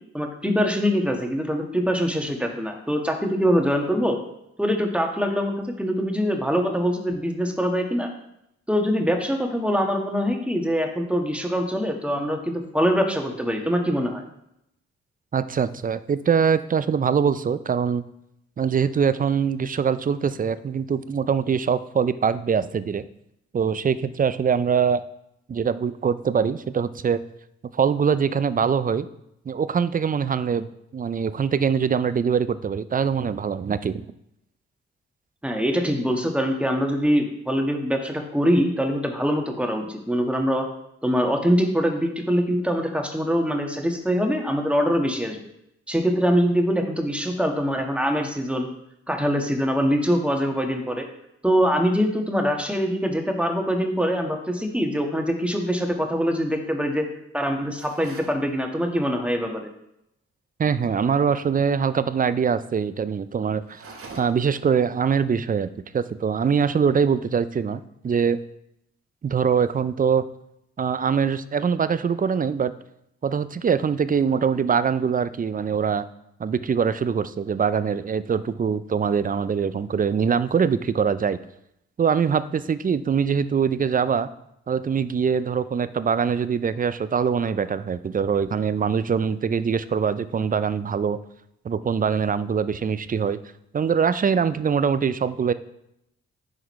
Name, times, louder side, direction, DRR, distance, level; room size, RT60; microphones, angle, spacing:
voice 1, 0.1-4.2 4.6-8.1 8.7-14.2 35.4-40.7 41.0-45.4 45.9-48.7 49.1-51.1 51.4-57.1 57.3-59.7, equal, 5° right, 3 dB, 1.4 m, -23 dB
voice 2, 15.3-18.0 18.6-23.0 23.5-25.0 25.5-27.2 27.7-29.1 29.5-34.1 60.6-63.8 64.2-65.7 65.9-68.4 69.2-70.3 70.8-72.7 73.2-76.1 76.4-81.4 82.0-84.3 84.7-91.2 91.6-93.4 93.7-95.5, right 6 dB, 30° right, 14 dB, 0.5 m, -23 dB
sound 1, 57.8-58.4 63.6-64.6, right 3 dB, 50° right, 1.1 m, -43 dB
10.0 x 3.8 x 3.1 m, 0.81 s
hypercardioid pair, 45°, 29 cm